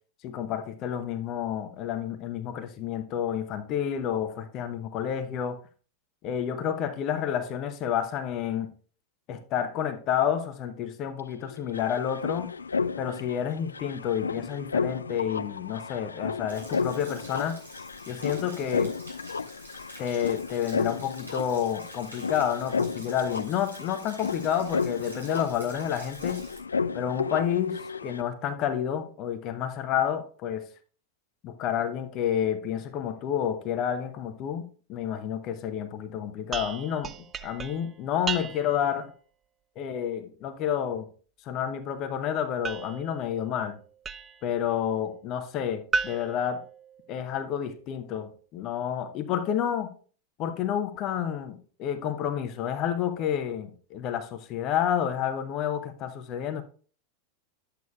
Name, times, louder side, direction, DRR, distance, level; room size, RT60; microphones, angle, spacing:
voice 1, 0.2-5.6 6.2-8.7 9.3-12.5 13.0-17.6 18.1-18.9 20.0-26.4 26.9-30.7 31.4-34.6 34.9-37.1 37.4-39.1 39.8-41.1 41.5-43.8 44.4-46.6 47.1-49.9 50.4-56.6, left 9 dB, 35° left, 0.8 m, -29 dB
sound 1, 11.2-11.3 11.4-28.2, left 5 dB, 75° left, 0.3 m, -33 dB
Stream / Splash splatter / Trickle dribble, 16.5-26.6, right 1 dB, 85° right, 3.9 m, -49 dB
sound 2, 36.5-38.9 42.6-44.5 45.9-47.4, right 5 dB, 20° right, 0.3 m, -35 dB
10.5 x 8.4 x 2.3 m
figure-of-eight pair, 90°, 0 cm